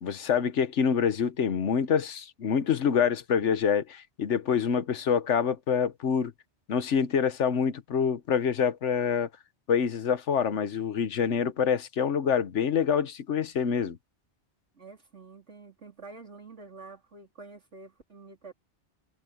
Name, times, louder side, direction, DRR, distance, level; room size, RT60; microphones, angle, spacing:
voice 1, 0.0-6.3 6.7-9.3 9.7-14.0, left 7 dB, 90° left, 1.3 m, -26 dB
voice 2, 14.7-18.5, right 3 dB, 90° right, 4.0 m, -48 dB
omnidirectional pair, 1.2 m